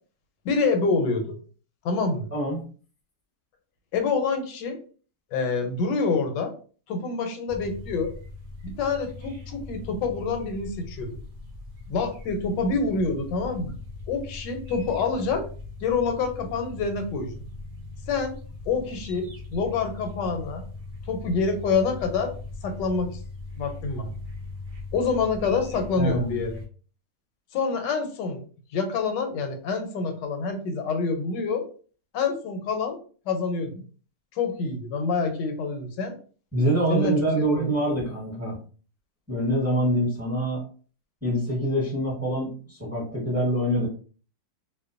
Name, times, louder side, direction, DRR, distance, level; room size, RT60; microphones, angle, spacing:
voice 1, 0.4-1.4 1.8-2.3 3.9-4.8 5.3-6.5 6.9-8.1 8.6-11.2 11.9-13.7 14.1-15.5 15.8-17.4 18.1-18.4 18.7-20.6 21.1-22.3 22.6-23.2 23.6-24.1 24.9-26.6 27.5-28.4 28.7-31.7 32.1-33.0 33.3-33.8 34.3-36.2 36.9-37.7, left 4 dB, 85° left, 6 dB, 1.2 m, -27 dB
voice 2, 2.3-2.6 26.0-26.3 36.5-38.6 39.3-40.6 41.2-43.9, right 1 dB, 10° right, -5 dB, 0.8 m, -25 dB
sound 1, 7.5-26.7, left 3 dB, 60° right, 0.7 m, -40 dB
2.8 x 2.1 x 2.4 m, 0.40 s
omnidirectional pair, 1.9 m